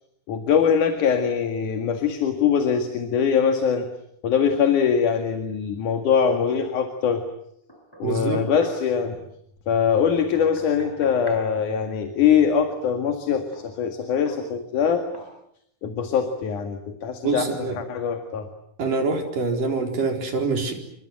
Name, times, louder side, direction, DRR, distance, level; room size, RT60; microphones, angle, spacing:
voice 1, 0.3-3.9 4.2-7.2 8.0-9.2 9.7-15.1 15.8-17.5 17.8-18.5, left 7 dB, 55° left, 6 dB, 3.3 m, -22 dB
Knock, 7.7-8.9 10.3-11.5 13.5-13.7 14.3-14.5 15.1-15.4, equal, 5° left, 7.7 m, -44 dB
voice 2, 8.0-8.4 17.2-17.8 18.8-20.7, right 4 dB, 60° right, 4 dB, 5.7 m, -25 dB
29.5 x 25.0 x 7.8 m, 0.73 s
omnidirectional pair, 4.4 m